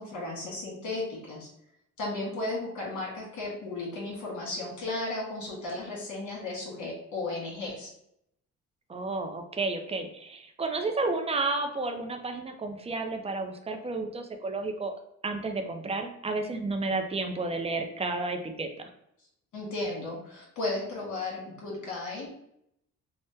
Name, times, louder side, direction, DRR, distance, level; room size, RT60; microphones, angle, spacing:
voice 1, 0.0-1.5 2.0-7.9 19.5-22.3, left 2 dB, 75° left, -3 dB, 1.5 m, -35 dB
voice 2, 8.9-14.9 15.2-18.7, right 3 dB, 20° right, 6 dB, 0.4 m, -31 dB
3.5 x 2.1 x 2.7 m, 0.76 s
cardioid pair, 90°, 30 cm